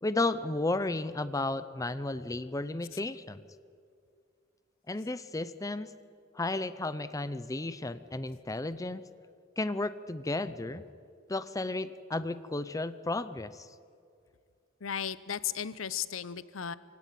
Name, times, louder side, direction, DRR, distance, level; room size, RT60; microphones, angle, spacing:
voice 1, 0.0-3.4 4.9-5.9 6.3-9.0 9.6-10.8 11.3-13.7, left 2 dB, 15° left, 13 dB, 0.6 m, -33 dB
voice 2, 14.8-16.7, left 8 dB, 80° left, 16 dB, 0.7 m, -35 dB
23.5 x 17.0 x 9.2 m, 2.3 s
head